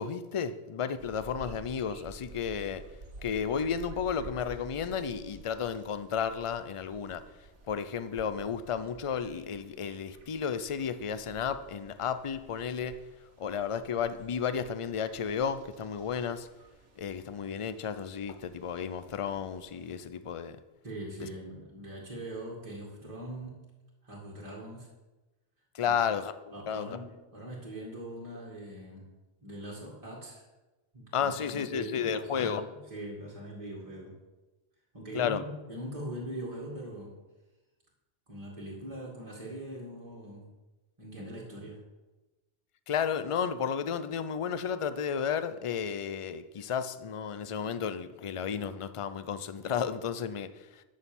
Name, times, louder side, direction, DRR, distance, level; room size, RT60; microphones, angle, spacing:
voice 1, 0.0-2.9 3.2-7.3 7.7-13.0 13.4-16.5 17.0-20.6 21.2-21.3 25.7-27.0 31.1-32.6 35.1-35.4 42.9-50.8, left 7 dB, 45° left, 0.4 m, -33 dB
sound 1, 1.0-19.9, right 3 dB, 75° right, 1.6 m, -52 dB
voice 2, 20.8-23.6 24.0-24.9 25.8-26.0 26.5-29.1 29.4-30.4 30.9-34.1 34.9-37.1 38.3-40.5 41.0-41.8, right 1 dB, 30° right, 2.3 m, -42 dB
11.0 x 6.4 x 7.2 m
omnidirectional pair, 1.2 m